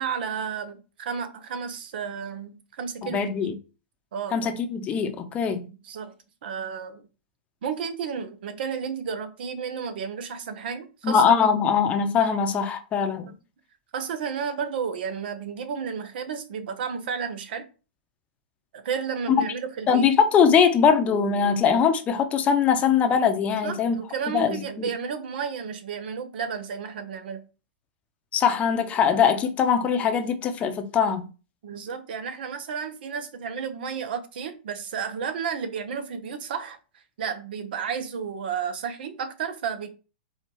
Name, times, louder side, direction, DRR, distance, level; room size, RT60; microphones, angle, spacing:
voice 1, 0.0-3.5 4.1-4.4 5.8-6.1 6.4-7.0 7.6-11.2 13.9-17.7 18.7-20.0 23.5-27.4 31.6-39.9, right 6 dB, 65° right, 0.8 m, -32 dB
voice 2, 3.1-3.5 4.3-5.6 11.0-13.3 19.9-24.0 24.3-24.9 28.3-31.3, left 7 dB, 25° left, 0.7 m, -22 dB
4.5 x 2.4 x 4.6 m
hypercardioid pair, 135°, 6 cm